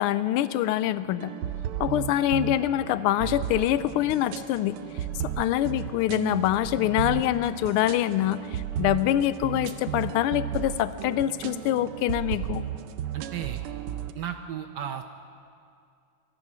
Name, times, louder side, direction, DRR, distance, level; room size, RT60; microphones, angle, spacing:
voice 1, 0.0-1.3 1.8-4.8 5.4-12.6, left 12 dB, 85° left, 15 dB, 1.5 m, -25 dB
sound 1, 1.2-14.1, right 11 dB, 90° right, 1.6 m, -34 dB
voice 2, 13.1-13.6 14.1-15.0, right 9 dB, 70° right, 8 dB, 1.0 m, -34 dB
22.5 x 10.5 x 6.1 m, 2.4 s
omnidirectional pair, 2.4 m